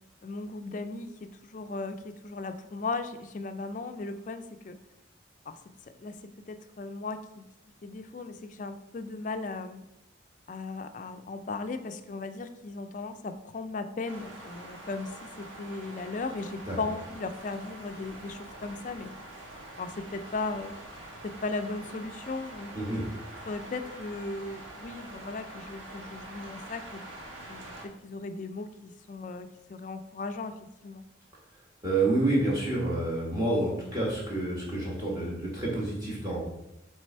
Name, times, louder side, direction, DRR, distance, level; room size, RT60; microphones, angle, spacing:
voice 1, 0.2-4.8 5.5-5.6 6.0-6.2 6.5-7.4 7.8-9.9 10.5-19.1 19.8-20.7 21.2-22.7 23.5-27.0 27.5-31.0, left 3 dB, 40° left, 8 dB, 0.3 m, -37 dB
sound 1, 14.0-27.9, right 1 dB, 90° right, 1.2 m, -45 dB
voice 2, 31.8-36.4, right 2 dB, 20° right, -5 dB, 1.3 m, -28 dB
6.5 x 3.3 x 4.3 m, 0.89 s
head